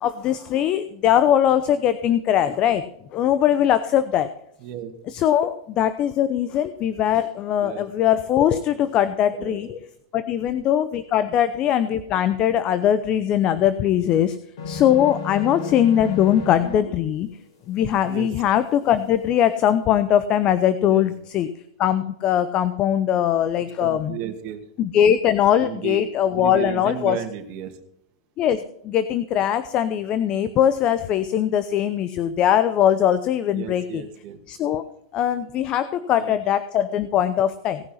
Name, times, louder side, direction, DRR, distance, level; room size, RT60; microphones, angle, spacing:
voice 1, 0.0-2.9 3.1-4.3 5.1-9.8 10.1-14.4 14.7-17.3 17.7-21.5 21.8-24.2 24.8-27.2 28.4-34.0 34.5-34.8 35.1-37.8, left 10 dB, 35° left, 13 dB, 0.8 m, -21 dB
voice 2, 4.6-4.9 7.6-7.8 9.4-9.6 14.0-14.2 18.0-18.3 20.9-21.1 23.8-24.6 25.3-26.0 26.4-27.8 33.5-34.4 36.1-36.4, right 10 dB, 45° right, 4 dB, 2.4 m, -33 dB
sound 1, 14.6-16.8, left 5 dB, 70° left, 5.0 m, -32 dB
18.0 x 6.2 x 5.7 m, 0.78 s
hypercardioid pair, 125°, 3 cm